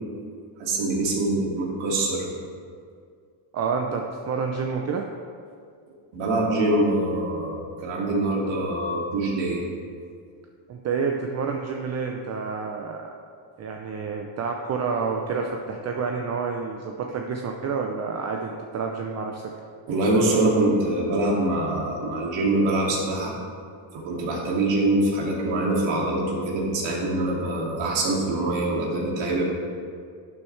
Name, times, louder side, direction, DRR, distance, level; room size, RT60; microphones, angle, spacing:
voice 1, 0.6-2.3 6.1-9.6 19.9-23.3 23.9-29.4, right 2 dB, 70° right, -2 dB, 2.5 m, -24 dB
voice 2, 3.5-5.1 10.7-13.1 13.6-19.4, right 5 dB, 35° right, 2 dB, 0.6 m, -29 dB
12.0 x 7.6 x 3.3 m, 2.2 s
cardioid pair, 125°, 46 cm